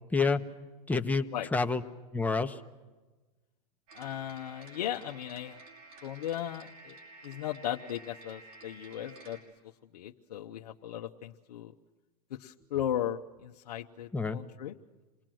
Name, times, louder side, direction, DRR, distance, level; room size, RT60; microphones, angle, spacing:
voice 1, 0.1-0.4 0.9-1.8 2.1-2.6 14.1-14.4, left 4 dB, 10° left, 6 dB, 1.1 m, -28 dB
voice 2, 3.9-5.6 6.0-7.0 7.2-9.4 9.9-11.7 12.3-14.7, left 11 dB, 85° left, 1 dB, 1.0 m, -36 dB
sound 1, 3.9-9.4, right 3 dB, 65° right, 6.1 m, -52 dB
27.5 x 19.5 x 7.7 m, 1.2 s
hypercardioid pair, 125°, 20 cm